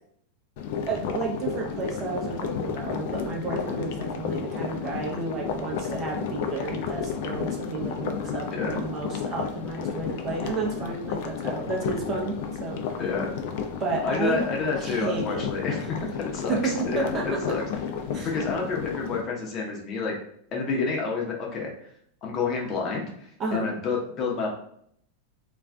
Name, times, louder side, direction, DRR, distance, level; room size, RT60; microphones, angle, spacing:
sound 1, 0.6-19.2, left 7 dB, 60° left, 0.4 m, -32 dB
voice 1, 0.9-12.8 13.8-14.4 14.8-15.4 16.5-17.6 18.1-18.3 23.4-23.7, right 4 dB, 30° right, 0 dB, 0.7 m, -31 dB
voice 2, 8.5-8.8 13.0-13.4 14.0-17.6 18.2-20.1 20.5-21.7 22.2-24.5, left 4 dB, 35° left, -1 dB, 0.8 m, -29 dB
2.5 x 2.3 x 3.3 m, 0.66 s
supercardioid pair, 125°, 0 cm